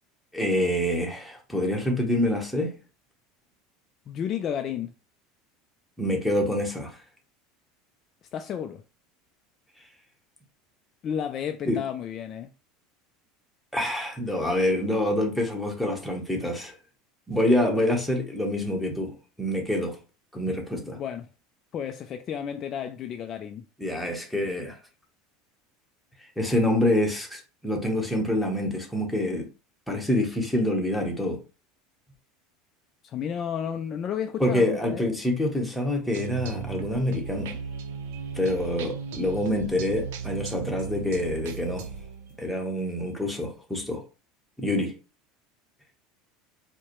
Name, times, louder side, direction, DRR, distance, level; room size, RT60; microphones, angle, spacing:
voice 1, 0.3-2.7 6.0-7.0 11.7-11.8 13.7-16.8 17.3-20.0 20.3-21.0 23.8-24.8 26.4-29.5 29.9-31.4 34.4-37.6 38.3-41.9 42.4-44.0 44.6-44.9, left 1 dB, ahead, 0.9 m, -26 dB
voice 2, 4.1-4.9 8.3-8.8 11.0-12.5 20.8-21.3 21.7-23.6 33.0-35.1, left 8 dB, 35° left, 0.3 m, -32 dB
sound 1, 36.1-42.6, right 6 dB, 85° right, 0.5 m, -36 dB
4.6 x 2.1 x 3.0 m
supercardioid pair, 140°, 0 cm